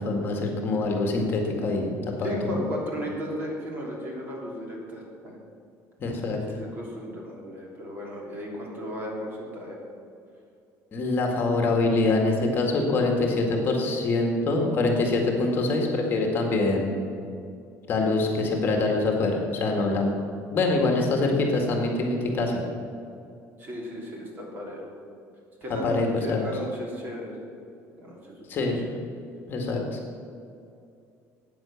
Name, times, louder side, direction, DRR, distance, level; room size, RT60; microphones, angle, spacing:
voice 1, 0.0-2.6 6.0-6.4 10.9-16.9 17.9-20.1 20.5-22.6 25.8-26.4 28.5-28.8 29.5-30.0, left 2 dB, 35° left, 1 dB, 2.0 m, -24 dB
voice 2, 2.2-5.4 6.3-9.8 20.7-21.4 23.6-24.9 25.6-27.4 27.9-28.4 28.8-28.9, equal, 35° right, -1 dB, 3.2 m, -35 dB
14.0 x 9.3 x 7.2 m, 2.5 s
cardioid pair, 165°, 6 cm